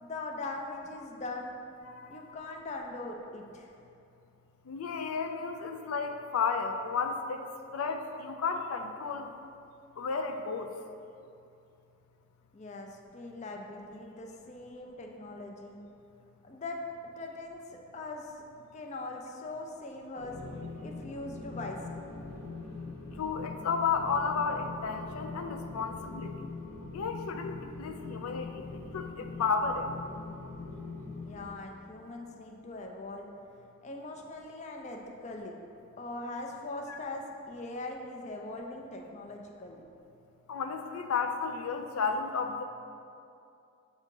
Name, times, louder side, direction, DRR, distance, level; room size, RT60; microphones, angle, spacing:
voice 1, 0.0-1.5 2.1-3.7 12.5-15.8 16.4-16.8 17.0-17.6 17.9-18.3 18.7-20.4 20.8-22.0 31.3-33.3 33.8-35.5 36.0-39.8, left 2 dB, 35° left, 2 dB, 0.4 m, -41 dB
voice 2, 1.9-2.4 4.7-9.3 10.0-10.7 23.2-26.5 26.9-29.9 36.9-37.0 40.5-42.6, left 5 dB, 90° left, 5 dB, 0.4 m, -33 dB
sound 1, 20.1-31.5, left 3 dB, 70° left, 1.0 m, -42 dB
7.0 x 2.7 x 5.2 m, 2.6 s
head